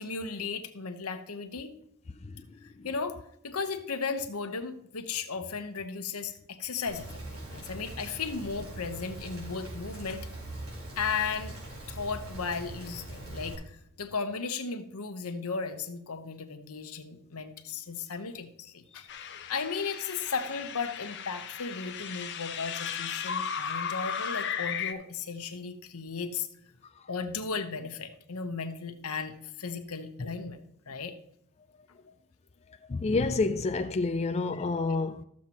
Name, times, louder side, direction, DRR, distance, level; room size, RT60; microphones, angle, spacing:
voice 1, 0.0-1.7 2.6-10.3 11.0-26.5 27.1-30.6 30.9-31.1 34.5-34.6, left 5 dB, 85° left, 1.0 m, -35 dB
Rain, 6.9-13.5, right 1 dB, 85° right, 4.5 m, -42 dB
sound 1, 19.1-24.9, left 7 dB, 55° left, 0.8 m, -35 dB
voice 2, 32.9-35.2, left 3 dB, 30° left, 0.4 m, -28 dB
14.0 x 7.4 x 3.0 m
head